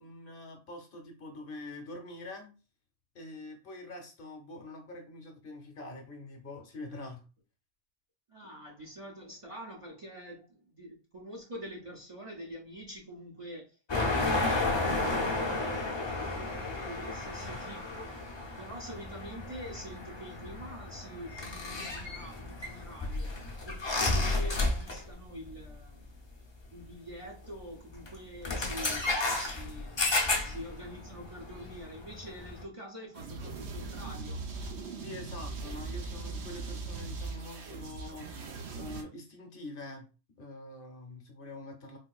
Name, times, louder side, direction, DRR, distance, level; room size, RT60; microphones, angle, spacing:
voice 1, 0.0-2.5 3.1-7.2 35.0-38.3 38.7-40.1 40.4-42.0, left 2 dB, 55° left, 0.8 m, -45 dB
voice 2, 8.3-16.0 16.3-18.1 18.6-23.3 23.6-26.3 26.7-34.4, equal, 35° right, 0.6 m, -46 dB
sound 1, 13.9-25.2 25.4-25.7 26.8-26.9 27.9-28.1 28.4-32.6, left 2 dB, 35° left, 0.5 m, -32 dB
sound 2, 33.1-39.0, right 3 dB, 80° right, 0.9 m, -40 dB
3.6 x 2.6 x 2.3 m
omnidirectional pair, 1.1 m